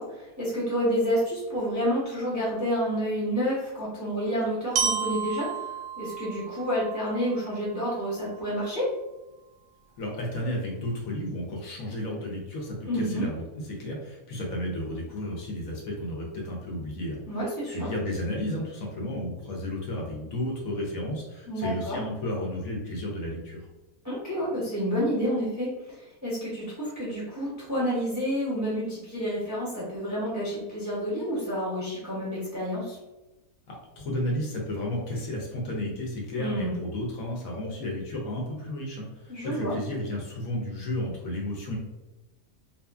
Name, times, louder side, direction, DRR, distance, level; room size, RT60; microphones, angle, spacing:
voice 1, 0.0-8.9 12.9-13.2 17.3-17.9 21.5-22.0 24.0-33.0 36.3-36.8 39.3-39.7, equal, 20° right, -9 dB, 0.5 m, -29 dB
Glockenspiel, 4.8-8.7, right 6 dB, 70° right, 0.8 m, -33 dB
voice 2, 10.0-17.2 17.6-23.6 33.7-41.8, left 1 dB, 70° left, -2 dB, 1.1 m, -32 dB
2.6 x 2.4 x 2.3 m, 1.0 s
omnidirectional pair, 1.5 m